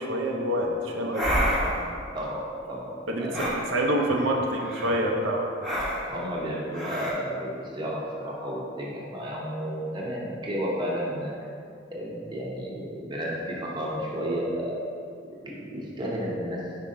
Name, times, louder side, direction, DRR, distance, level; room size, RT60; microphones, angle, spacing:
voice 1, 0.0-1.9 3.1-5.5, right 1 dB, 75° right, 0 dB, 0.6 m, -27 dB
sound 1, 1.1-1.9 3.3-3.6 4.6-5.0 5.6-6.1 6.7-7.1, equal, ahead, 1.1 m, -28 dB
voice 2, 2.7-3.5 6.1-11.3 11.9-14.8 15.4-16.8, equal, 25° right, -4 dB, 0.9 m, -32 dB
5.5 x 4.7 x 3.7 m, 2.3 s
head